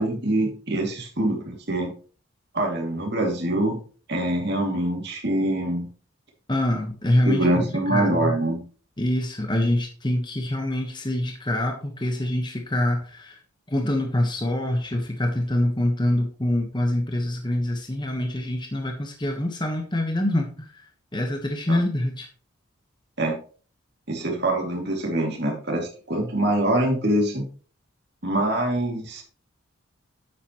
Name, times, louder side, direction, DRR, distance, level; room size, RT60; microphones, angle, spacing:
voice 1, 0.0-1.9 2.5-3.8 4.1-5.9 7.3-8.6 21.7-21.8 23.2-23.4 24.1-27.5 28.2-29.2, right 1 dB, 50° right, 1 dB, 2.6 m, -24 dB
voice 2, 6.5-8.4 9.0-13.4 13.7-22.3, left 1 dB, 20° left, 3 dB, 1.2 m, -25 dB
9.8 x 8.2 x 3.1 m, 0.39 s
head